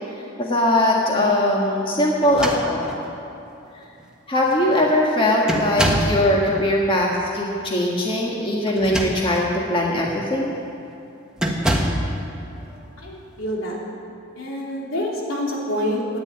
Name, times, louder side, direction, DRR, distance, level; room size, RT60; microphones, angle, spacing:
voice 1, 0.4-2.9 4.3-10.5, left 1 dB, 25° left, -2 dB, 1.5 m, -20 dB
sound 1, 2.2-3.1 4.0-4.1 4.5-4.8 5.5-6.2 8.7-9.5 10.1-10.3 11.4-12.1, right 1 dB, 5° right, 1.3 m, -25 dB
voice 2, 12.5-13.8 14.3-16.2, left 1 dB, 75° left, -3 dB, 3.4 m, -27 dB
14.5 x 9.5 x 9.6 m, 2.9 s
head